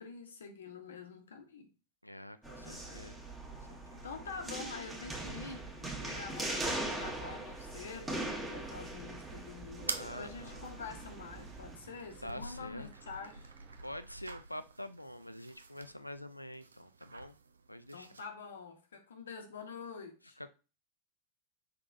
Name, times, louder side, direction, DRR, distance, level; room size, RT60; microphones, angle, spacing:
voice 1, 0.0-1.7 2.6-3.1 4.0-13.5 17.9-20.4, left 5 dB, 65° left, 0.8 m, -47 dB
voice 2, 2.0-3.2 3.6-4.0 10.0-10.7 12.2-12.9 13.8-17.4 17.7-18.1 20.4-20.5, left 1 dB, 90° left, 0.4 m, -46 dB
sound 1, 2.4-11.8, right 2 dB, 10° right, 1.4 m, -41 dB
sound 2, 7.0-14.0, right 7 dB, 35° right, 0.8 m, -56 dB
sound 3, 9.7-18.3, right 4 dB, 75° right, 0.4 m, -48 dB
5.6 x 3.7 x 2.5 m
figure-of-eight pair, 90°, 0 cm